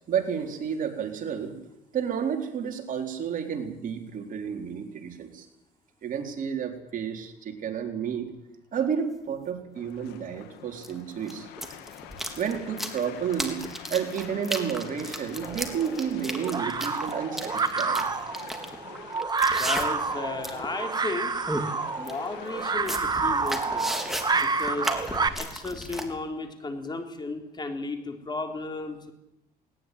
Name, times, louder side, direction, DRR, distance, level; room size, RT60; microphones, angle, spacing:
voice 1, 0.1-1.6 1.9-5.5 6.0-8.3 8.7-11.5 12.4-18.1, right 7 dB, 50° right, 4 dB, 4.1 m, -31 dB
sound 1, 8.8-8.9 10.8-10.9 11.2-20.1 20.4-20.7 21.1-21.2 21.5-21.6 22.1-22.2 22.6-26.0, equal, ahead, 3.7 m, -34 dB
sound 2, 9.8-25.5, left 11 dB, 85° left, 2.3 m, -46 dB
sound 3, 15.4-25.3, right 4 dB, 25° right, 1.7 m, -29 dB
voice 2, 19.6-21.4 22.0-23.9 24.4-24.9 25.4-29.1, left 3 dB, 25° left, 5 dB, 3.8 m, -34 dB
19.5 x 19.5 x 9.4 m, 0.83 s
cardioid pair, 110°, 17 cm